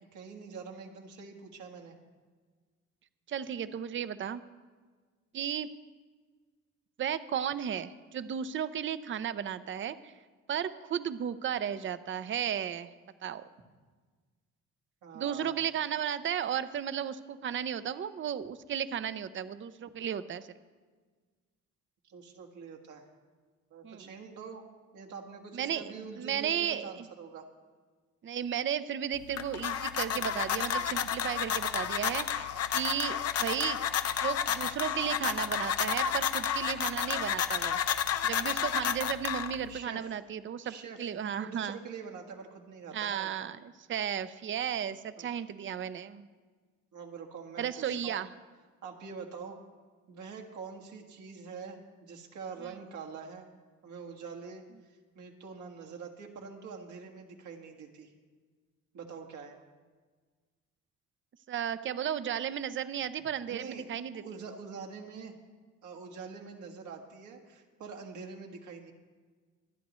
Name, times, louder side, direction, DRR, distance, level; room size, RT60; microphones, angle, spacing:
voice 1, 0.1-2.0 15.0-15.6 22.0-23.0 23.7-24.7 24.9-27.5 39.7-40.0 40.6-43.3 45.2-45.4 46.9-48.2 48.8-49.6 50.1-53.5 53.8-58.1 58.9-59.6 63.5-63.8 64.2-65.3 65.8-68.9, right 5 dB, 75° right, 2 dB, 1.6 m, -45 dB
voice 2, 3.3-4.4 5.3-5.7 7.0-10.1 10.5-12.9 13.2-13.4 15.1-20.5 23.8-24.1 25.5-27.1 28.2-33.8 34.2-37.8 38.2-41.8 42.9-43.6 43.9-46.3 47.6-48.3 61.5-64.2, right 9 dB, 40° right, 13 dB, 0.6 m, -34 dB
sound 1, 29.1-39.8, left 8 dB, 55° left, 0.7 m, -31 dB
24.5 x 9.3 x 3.1 m, 1.5 s
cardioid pair, 90°, 30 cm